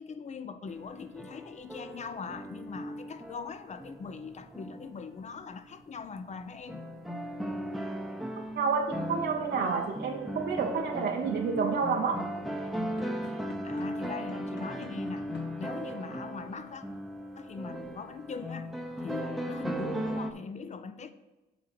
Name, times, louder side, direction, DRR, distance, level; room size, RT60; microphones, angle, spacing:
voice 1, 0.0-6.8 13.2-15.3 15.6-16.8 17.4-18.7 19.0-21.1, left 5 dB, 35° left, 0.6 m, -41 dB
sound 1, 0.7-5.2 5.8-5.9 6.7-20.3, equal, ahead, 0.8 m, -37 dB
voice 2, 8.6-12.3, right 5 dB, 60° right, 0.7 m, -29 dB
sound 2, 12.9-16.9, left 4 dB, 60° left, 1.4 m, -47 dB
7.2 x 3.8 x 6.0 m
cardioid pair, 90°, 20 cm